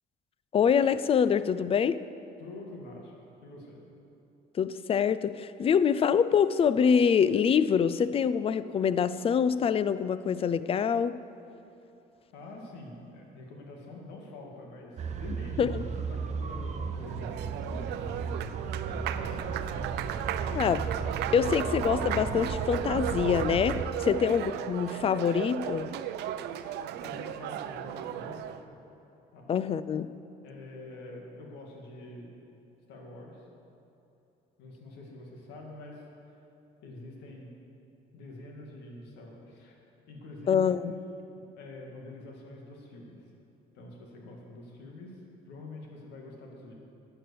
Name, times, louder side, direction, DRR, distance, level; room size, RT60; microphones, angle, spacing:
voice 1, 0.5-2.0 4.6-11.2 15.6-15.8 20.5-20.9 21.3-25.9 29.5-30.1 40.5-40.8, left 7 dB, 35° left, 15 dB, 0.4 m, -25 dB
voice 2, 2.4-3.8 12.3-19.4 27.0-28.8 29.3-29.5 30.4-32.3 32.9-33.4 34.6-36.0 36.8-37.6 38.1-39.8 40.1-40.8 41.4-43.2 43.7-45.2 45.5-46.7, left 2 dB, 85° left, 0 dB, 2.0 m, -46 dB
sound 1, 15.0-23.9, right 5 dB, 45° right, 0.7 m, -35 dB
Applause, 16.8-28.6, right 11 dB, 80° right, 0.6 m, -35 dB
11.0 x 7.9 x 6.9 m, 2.9 s
cardioid pair, 110°, 17 cm